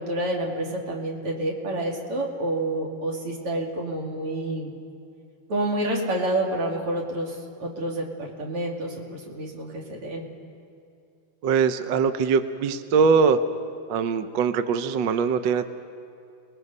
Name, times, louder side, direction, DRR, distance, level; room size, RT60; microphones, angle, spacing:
voice 1, 0.0-4.7 5.5-10.3, right 1 dB, 90° right, -1 dB, 3.5 m, -28 dB
voice 2, 11.4-13.4 13.9-15.7, right 5 dB, 65° right, 10 dB, 1.3 m, -22 dB
29.5 x 20.5 x 5.5 m, 2.5 s
omnidirectional pair, 2.4 m